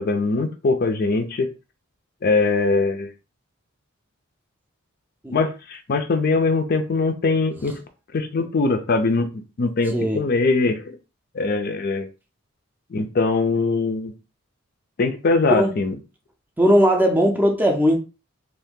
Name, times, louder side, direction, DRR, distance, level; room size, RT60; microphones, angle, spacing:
voice 1, 0.0-1.5 2.2-3.1 5.3-7.8 8.1-11.0 11.3-12.1 12.9-14.1 15.0-16.0, left 3 dB, 45° left, 0.4 m, -22 dB
voice 2, 9.9-10.3 15.5-15.7 16.6-18.0, equal, 10° right, 0.5 m, -18 dB
2.7 x 2.5 x 3.6 m
head